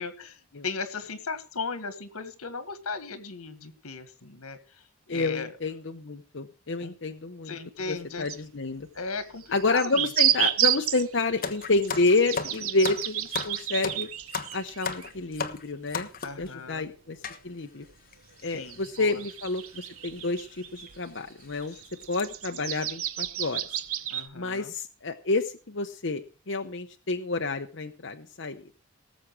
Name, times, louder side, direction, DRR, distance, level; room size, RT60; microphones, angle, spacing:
voice 1, 0.0-0.4 0.6-4.6 5.1-5.5 6.8-6.9 7.5-8.3 9.0-10.1 16.2-16.9 18.5-19.2 24.1-24.7, left 4 dB, 85° left, 10 dB, 1.7 m, -36 dB
voice 2, 5.1-7.6 7.9-8.9 9.5-14.1 14.5-16.1 16.4-17.9 18.4-21.7 22.1-23.6 24.3-28.6, left 3 dB, 55° left, 5 dB, 0.9 m, -29 dB
sound 1, 7.9-8.0 8.3-8.4 9.4-15.6 15.9-16.0 16.4-16.5 17.9-18.0 18.6-21.0 21.4-24.3, right 11 dB, 75° right, 1.0 m, -31 dB
sound 2, 11.4-16.5 17.2-17.4 18.1-18.2 18.4-18.6 19.6-19.8 20.2-20.3 20.9-21.0 21.4-21.6 22.0-22.2, left 5 dB, 40° left, 1.3 m, -35 dB
19.0 x 7.4 x 4.7 m, 0.36 s
head